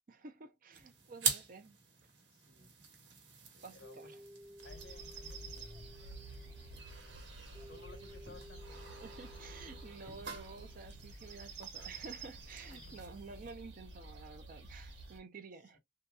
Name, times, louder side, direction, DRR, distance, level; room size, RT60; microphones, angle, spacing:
voice 1, 0.1-1.8 3.6-4.2 9.0-15.8, right 4 dB, 50° right, 0.6 m, -51 dB
sound 1, 0.7-13.5, right 5 dB, 90° right, 1.1 m, -45 dB
voice 2, 2.3-2.7 3.5-4.1 4.6-5.9 6.4-6.7 7.7-8.8 12.7-13.0 15.7-15.8, left 3 dB, 85° left, 1.0 m, -58 dB
sound 2, 3.8-11.1, equal, 15° right, 1.0 m, -57 dB
sound 3, 4.6-15.2, right 3 dB, 70° right, 1.2 m, -50 dB
2.8 x 2.7 x 2.3 m
head